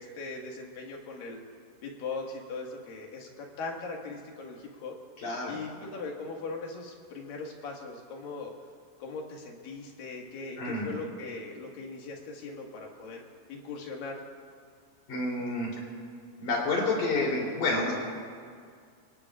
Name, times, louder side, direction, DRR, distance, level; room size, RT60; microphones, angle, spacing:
voice 1, 0.0-1.4 1.8-5.0 5.5-8.5 9.0-13.2 13.5-14.2, left 3 dB, 80° left, 0 dB, 3.5 m, -39 dB
voice 2, 5.2-5.5 10.6-10.9 15.1-15.7 16.4-17.9, left 2 dB, 65° left, -3 dB, 4.8 m, -29 dB
25.5 x 23.0 x 2.5 m, 2.1 s
omnidirectional pair, 3.9 m